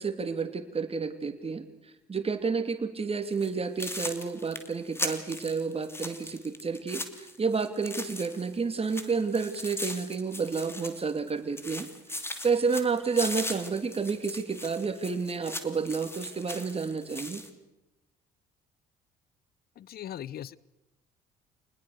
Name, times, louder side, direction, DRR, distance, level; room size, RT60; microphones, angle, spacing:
voice 1, 0.0-1.7 2.1-7.0 7.4-11.9 12.4-17.4, right 5 dB, 30° right, 8 dB, 2.8 m, -30 dB
sound 1, 3.3-3.5 3.8-8.5 8.8-11.3 11.6-17.5, left 1 dB, 15° left, 2.8 m, -39 dB
voice 2, 19.8-20.6, left 11 dB, 55° left, 22 dB, 0.8 m, -39 dB
28.0 x 20.0 x 6.7 m, 0.96 s
hypercardioid pair, 60°, 19 cm